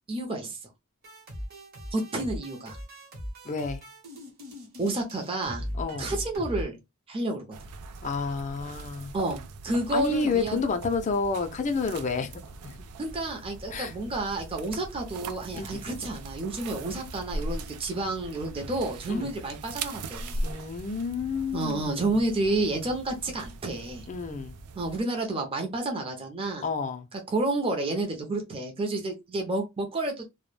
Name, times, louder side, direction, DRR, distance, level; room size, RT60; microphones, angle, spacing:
voice 1, 0.1-0.6 1.9-2.8 4.8-5.7 6.0-6.8 7.1-7.4 9.1-10.6 13.0-20.4 21.5-24.0 24.7-26.7 27.3-30.3, right 2 dB, 25° right, 0.5 m, -30 dB
sound 1, 1.0-6.6, equal, 45° right, 0.9 m, -39 dB
voice 2, 3.4-3.8 5.7-6.1 8.0-9.1 9.9-12.7 13.7-13.9 15.5-15.8 19.1-19.3 20.4-22.0 24.1-24.6 26.6-27.1, left 4 dB, 35° left, 0.4 m, -30 dB
sound 2, 7.5-25.0, right 2 dB, 85° right, 0.4 m, -40 dB
2.2 x 2.1 x 3.1 m
head